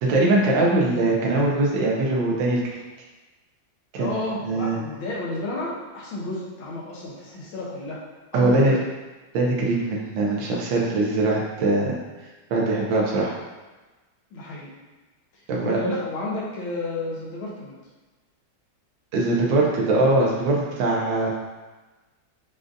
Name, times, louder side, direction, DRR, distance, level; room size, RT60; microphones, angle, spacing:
voice 1, 0.0-2.6 3.9-4.1 4.4-4.8 8.3-8.7 9.3-12.0 12.5-13.3 15.5-15.8 19.1-21.3, right 2 dB, 75° right, -3 dB, 1.5 m, -21 dB
voice 2, 4.0-8.0 8.3-8.8 14.3-14.7 15.3-17.8, left 2 dB, 85° left, -4 dB, 1.6 m, -31 dB
6.4 x 2.4 x 2.6 m, 1.2 s
omnidirectional pair, 2.2 m